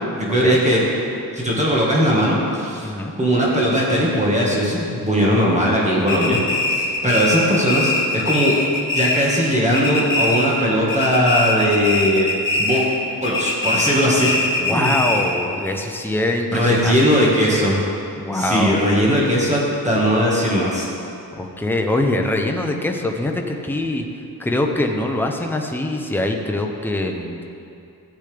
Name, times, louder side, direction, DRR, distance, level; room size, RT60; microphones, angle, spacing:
voice 1, 0.1-0.8 1.3-2.9 3.2-6.4 6.7-8.5 8.9-12.3 12.6-12.8 13.2-14.4 14.7-14.9 16.5-17.8 18.3-20.9, equal, 20° right, -5 dB, 1.7 m, -19 dB
voice 2, 2.8-3.1 14.6-17.3 18.2-18.8 21.4-24.0 24.4-27.4, left 1 dB, 5° left, 2 dB, 0.8 m, -23 dB
sound 1, 6.1-9.5 9.7-10.6 10.9-12.9 13.2-15.4, left 2 dB, 65° left, 1.4 m, -22 dB
13.5 x 8.3 x 3.5 m, 2.7 s
wide cardioid pair, 95°, 37 cm